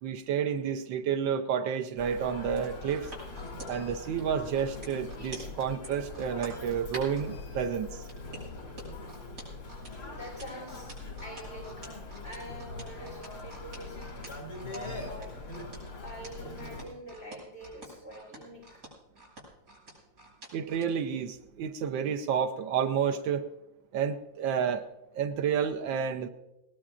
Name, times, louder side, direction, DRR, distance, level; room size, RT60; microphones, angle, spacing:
voice 1, 0.0-3.1 3.7-8.0 20.5-23.5 23.9-24.9 25.1-26.3, right 7 dB, 85° right, 5 dB, 1.5 m, -30 dB
Human voice, 2.0-16.8, left 3 dB, 90° left, 3.1 m, -42 dB
sound 1, 2.6-7.3 8.1-20.9 21.3-21.5, right 1 dB, 60° right, 7.0 m, -47 dB
voice 2, 10.1-10.9 11.2-11.8 12.2-14.1 14.7-15.3 16.0-18.9, equal, 35° left, -4 dB, 3.5 m, -45 dB
21.5 x 18.0 x 2.5 m, 0.95 s
omnidirectional pair, 2.0 m